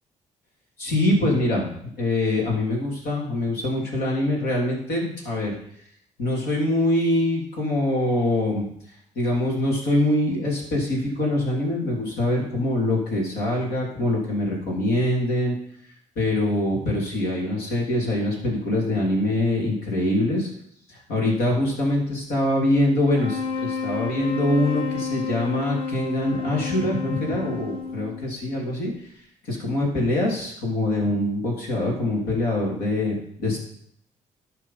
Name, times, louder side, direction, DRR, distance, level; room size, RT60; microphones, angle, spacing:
voice 1, 0.8-1.7 2.0-5.5 6.2-8.7 9.1-15.5 16.1-20.5 21.1-28.9 29.4-33.6, left 1 dB, 75° left, -2 dB, 3.2 m, -24 dB
sound 1, 23.0-28.5, left 5 dB, 30° left, 1.7 m, -30 dB
12.0 x 4.6 x 5.6 m, 0.68 s
hypercardioid pair, 50°, 16 cm